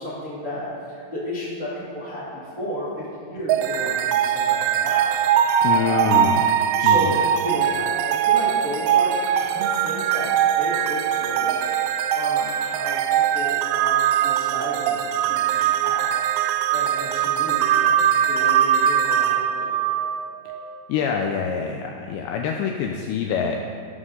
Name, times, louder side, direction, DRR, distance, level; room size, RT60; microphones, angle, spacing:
voice 1, 0.0-2.9 3.2-5.2 5.5-6.2 6.7-9.1 9.4-10.3 10.6-11.5 12.1-16.1 16.7-20.0, equal, 45° right, -9 dB, 0.9 m, -33 dB
sound 1, 3.5-20.6, right 9 dB, 85° right, 2.8 m, -21 dB
voice 2, 5.6-6.3 6.8-7.1 20.9-23.6, left 6 dB, 85° left, 3 dB, 2.5 m, -25 dB
12.5 x 11.0 x 3.8 m, 2.2 s
omnidirectional pair, 5.6 m